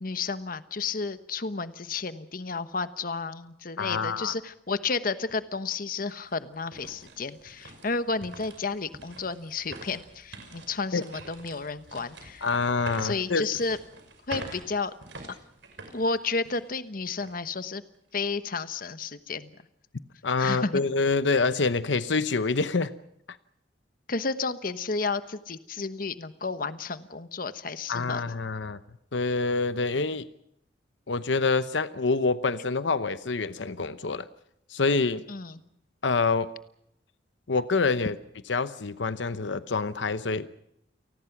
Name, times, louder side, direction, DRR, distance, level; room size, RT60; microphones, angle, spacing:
voice 1, 0.0-12.5 13.0-13.8 14.3-14.9 15.9-17.8 18.1-19.6 20.4-20.8 24.1-28.2 35.3-35.6, left 4 dB, 50° left, 12 dB, 1.1 m, -32 dB
voice 2, 3.8-4.3 10.9-11.0 12.4-13.4 20.2-22.9 23.3-23.4 27.9-28.8 29.1-30.3 31.1-34.2 34.7-35.2 36.0-36.5 37.5-38.2 38.5-40.5, left 4 dB, 85° left, 13 dB, 0.9 m, -26 dB
sound 1, 5.3-5.4 5.9-16.8 17.2-17.3 17.9-18.2, right 2 dB, 90° right, 5.9 m, -46 dB
29.0 x 19.5 x 6.0 m, 0.78 s
head